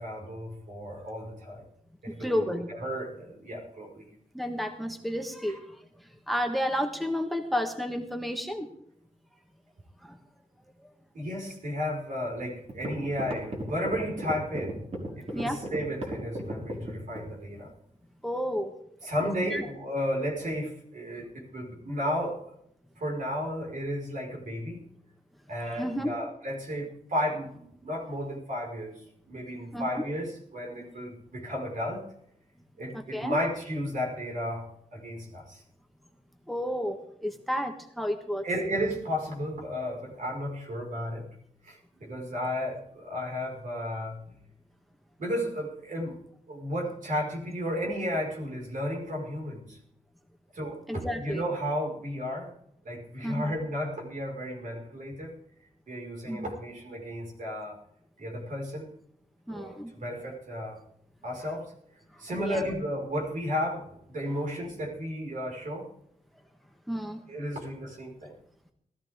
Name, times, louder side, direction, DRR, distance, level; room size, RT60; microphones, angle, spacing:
voice 1, 0.0-1.6 2.0-4.1 11.1-14.8 15.2-17.7 19.0-22.4 23.0-24.8 25.5-32.0 32.8-35.6 38.4-41.3 41.6-44.2 45.2-46.2 46.5-49.8 50.5-52.5 52.8-55.3 55.9-57.8 58.2-58.9 59.5-60.8 61.2-61.7 62.2-65.9 67.3-68.4, equal, 75° right, -1 dB, 5.1 m, -33 dB
voice 2, 2.1-2.7 4.3-8.7 10.0-10.2 15.3-15.6 18.2-18.7 19.2-19.6 25.6-26.2 29.7-30.0 32.9-33.4 36.5-38.5 50.9-51.4 53.2-53.6 56.3-56.5 59.5-59.9 62.3-62.6 66.9-67.2, equal, ahead, 5 dB, 1.4 m, -32 dB
sound 1, 12.2-12.3 12.7-17.3, right 1 dB, 50° right, 4.7 m, -35 dB
20.0 x 14.0 x 3.7 m, 0.72 s
wide cardioid pair, 105°, 14 cm